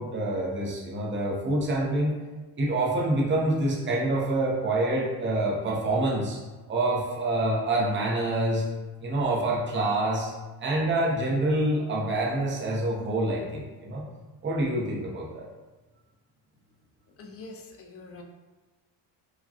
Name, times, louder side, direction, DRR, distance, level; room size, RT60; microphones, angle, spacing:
voice 1, 0.0-2.1 2.6-6.4 6.7-8.6 9.0-10.3 10.6-14.0 14.4-15.4, right 2 dB, 25° right, -3 dB, 0.7 m, -26 dB
voice 2, 17.2-18.2, left 3 dB, 35° left, 2 dB, 0.4 m, -44 dB
4.8 x 2.2 x 2.8 m, 1.2 s
cardioid pair, 155°, 45 cm